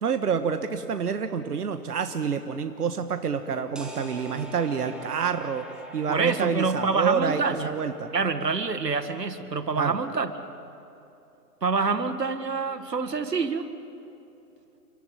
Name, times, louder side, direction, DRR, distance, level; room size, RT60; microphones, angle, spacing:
voice 1, 0.0-5.6 5.9-8.1 9.8-10.0, right 6 dB, 70° right, 8 dB, 1.5 m, -28 dB
sound 1, 3.8-9.3, right 1 dB, ahead, 1.5 m, -45 dB
voice 2, 6.1-7.7 8.1-10.3 11.6-13.7, right 4 dB, 90° right, 10 dB, 1.8 m, -26 dB
30.0 x 14.0 x 9.3 m, 2.8 s
hypercardioid pair, 145°, 48 cm